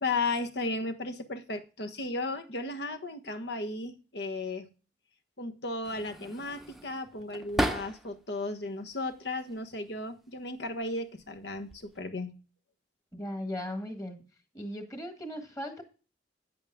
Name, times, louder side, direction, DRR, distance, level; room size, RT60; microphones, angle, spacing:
voice 1, 0.0-4.7 5.4-12.3, left 2 dB, 65° left, 1.3 m, -35 dB
sound 1, 5.8-8.3 8.7-9.6 10.5-10.9 11.2-12.0, equal, ahead, 0.8 m, -36 dB
voice 2, 13.1-14.2 14.5-15.8, equal, 20° left, 1.6 m, -37 dB
9.4 x 8.4 x 3.6 m
head